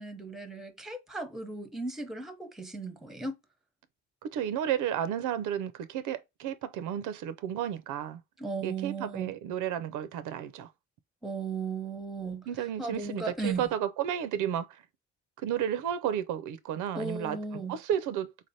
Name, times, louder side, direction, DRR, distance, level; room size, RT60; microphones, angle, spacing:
voice 1, 0.0-3.4 8.4-9.3 11.2-12.5 12.8-13.6 16.9-17.8, right 4 dB, ahead, 0.7 m, -36 dB
voice 2, 4.2-8.2 8.6-10.7 12.5-14.8 15.4-17.4 17.7-18.5, right 10 dB, 85° right, 0.5 m, -32 dB
3.6 x 3.3 x 2.6 m
cardioid pair, 90°, 30 cm